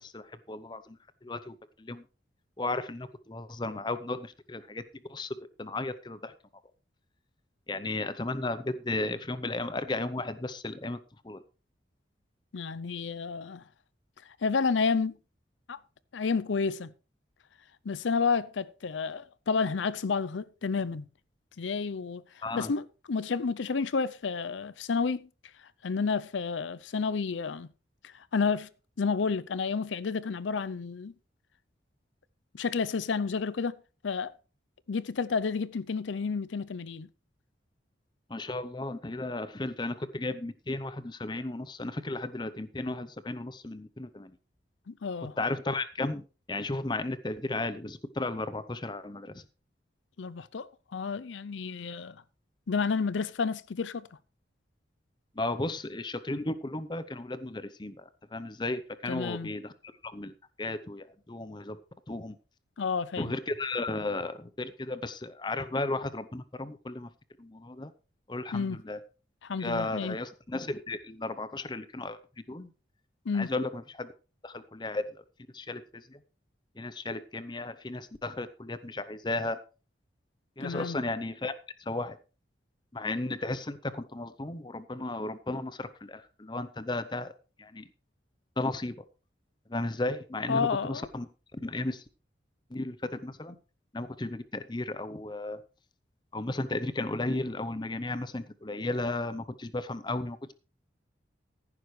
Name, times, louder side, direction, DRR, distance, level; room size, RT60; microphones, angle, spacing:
voice 1, 0.0-2.0 2.6-4.8 5.1-6.3 7.7-11.0 11.2-11.4 22.4-22.7 38.3-44.3 45.4-49.4 55.4-59.7 60.0-60.3 60.6-61.8 62.1-62.4 63.2-67.1 67.4-67.9 68.3-69.0 69.6-72.2 72.5-72.7 73.3-74.1 74.4-75.2 75.5-76.2 76.8-79.6 80.6-81.5 81.8-82.2 82.9-87.3 87.6-87.9 88.6-88.9 89.7-91.3 91.5-92.0 92.7-93.6 93.9-95.6 96.3-100.5, left 2 dB, 25° left, 0.7 m, -34 dB
voice 2, 12.5-13.6 14.4-15.2 15.7-15.8 16.1-16.9 17.8-21.0 21.6-25.3 25.8-27.7 28.0-28.7 29.0-31.1 32.5-33.8 34.0-34.3 34.9-37.1 44.9-45.4 50.2-52.2 52.7-54.1 59.1-59.5 62.8-63.4 68.5-68.8 69.4-70.2 73.3-73.5 80.6-81.0 90.5-91.1, left 5 dB, 85° left, 0.5 m, -30 dB
14.5 x 11.0 x 3.2 m
head